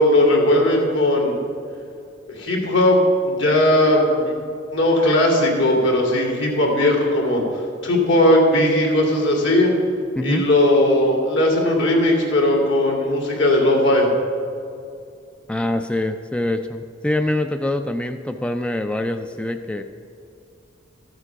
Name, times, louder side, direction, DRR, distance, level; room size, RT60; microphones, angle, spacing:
voice 1, 0.0-1.3 2.4-4.4 4.7-7.4 7.8-9.7 10.2-14.1, left 1 dB, 70° left, 0 dB, 2.6 m, -18 dB
voice 2, 10.2-10.5 15.5-19.8, left 1 dB, 5° left, 7 dB, 0.3 m, -24 dB
14.0 x 7.9 x 5.9 m, 2.4 s
head